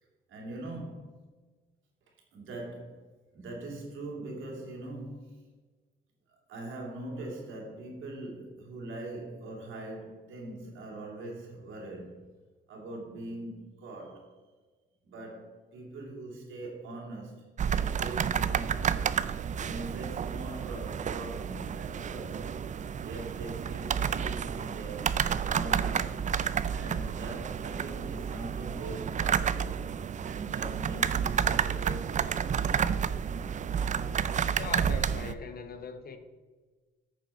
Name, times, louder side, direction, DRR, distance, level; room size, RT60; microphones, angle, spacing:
voice 1, 0.3-1.1 2.3-3.0 3.3-5.4 6.5-12.3 12.7-14.3 15.0-19.0 19.6-22.5 23.0-26.3 26.7-29.8 30.2-33.0, right 2 dB, 80° right, 2.8 m, -42 dB
sound 1, 17.6-35.3, right 7 dB, 40° right, 0.4 m, -30 dB
voice 2, 34.5-36.2, left 5 dB, 50° left, 1.1 m, -40 dB
9.7 x 6.7 x 4.3 m
cardioid pair, 90°, 20 cm